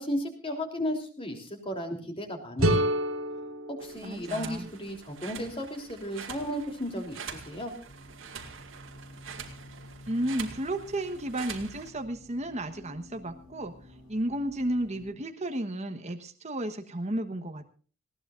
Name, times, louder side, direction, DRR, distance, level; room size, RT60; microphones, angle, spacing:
voice 1, 0.0-2.9 3.7-7.7, equal, 25° left, 3 dB, 3.3 m, -34 dB
sound 1, 2.6-5.5, right 1 dB, 85° right, 3.3 m, -30 dB
sound 2, 3.8-11.9, right 6 dB, 70° right, 2.3 m, -45 dB
voice 2, 4.0-4.7 10.1-13.7 14.1-17.7, right 1 dB, 35° right, 7 dB, 1.2 m, -33 dB
sound 3, 7.9-15.1, equal, 80° left, 6.1 m, -51 dB
19.5 x 17.0 x 2.5 m, 0.40 s
head